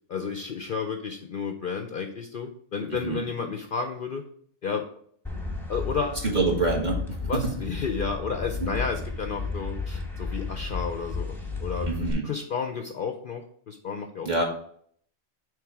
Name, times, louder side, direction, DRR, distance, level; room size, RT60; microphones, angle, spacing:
voice 1, 0.1-4.2 4.6-4.8 5.7-6.2 7.3-11.3 11.6-11.9 12.2-14.4, left 5 dB, 55° left, 5 dB, 0.6 m, -32 dB
sound 1, 5.2-12.1, left 4 dB, ahead, 0.9 m, -33 dB
voice 2, 6.2-7.0 11.8-12.3 14.2-14.4, right 3 dB, 35° right, -1 dB, 1.5 m, -25 dB
7.2 x 3.3 x 4.6 m, 0.62 s
omnidirectional pair, 1.3 m